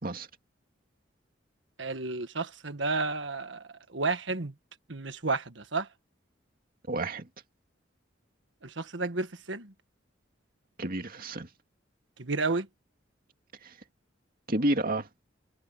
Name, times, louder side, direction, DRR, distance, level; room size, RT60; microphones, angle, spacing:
voice 1, 1.8-4.5 4.9-5.9 8.6-9.7 12.2-12.7, right 3 dB, 70° right, 1.6 m, -32 dB
voice 2, 6.9-7.3 10.8-11.5 13.6-13.7 14.5-15.1, right 1 dB, 50° right, 2.3 m, -30 dB
head